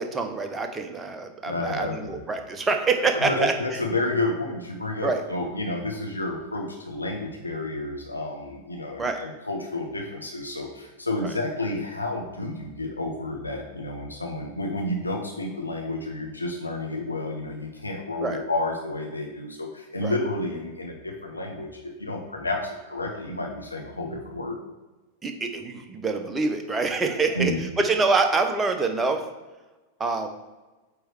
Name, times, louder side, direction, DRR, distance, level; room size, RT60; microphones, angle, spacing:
voice 1, 0.0-3.8 5.0-5.2 9.0-9.2 11.2-11.3 18.2-18.4 20.0-20.2 25.2-29.2 30.0-30.3, right 3 dB, 15° right, 6 dB, 0.9 m, -26 dB
voice 2, 1.5-2.2 3.3-24.5 27.3-27.6, left 2 dB, 80° left, 1 dB, 0.9 m, -30 dB
8.3 x 3.2 x 4.7 m, 1.2 s
figure-of-eight pair, 90°, 0 cm